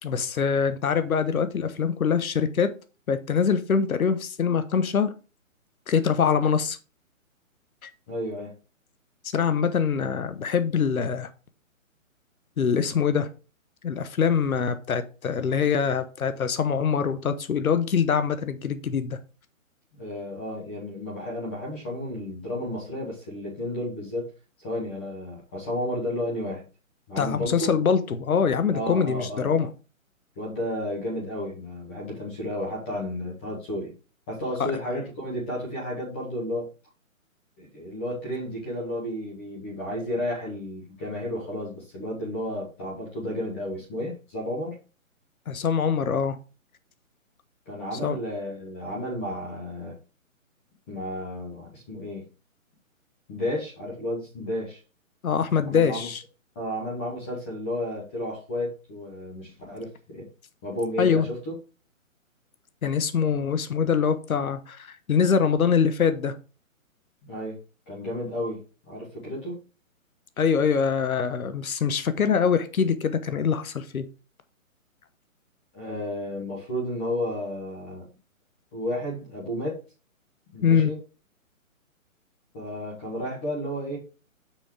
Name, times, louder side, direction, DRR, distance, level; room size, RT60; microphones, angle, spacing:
voice 1, 0.0-2.7 3.1-5.1 5.9-6.8 7.8-7.9 9.3-11.3 12.6-13.3 13.8-19.2 27.2-29.7 45.5-46.4 48.0-48.2 55.2-56.2 61.0-61.3 62.8-66.3 70.4-74.1 80.6-80.9, left 6 dB, 85° left, 11 dB, 1.0 m, -24 dB
voice 2, 8.1-8.5 19.9-24.3 24.6-26.6 27.1-27.7 28.7-29.7 30.4-33.9 34.3-36.7 37.6-44.8 47.7-50.0 50.9-52.3 53.3-54.8 55.6-56.1 56.5-60.3 60.6-61.5 67.2-67.6 67.9-68.6 68.9-69.6 75.7-78.1 78.7-79.8 80.5-81.0 82.5-84.0, left 1 dB, 10° left, -4 dB, 0.9 m, -32 dB
6.1 x 4.9 x 4.4 m, 0.33 s
hypercardioid pair, 170°, 41 cm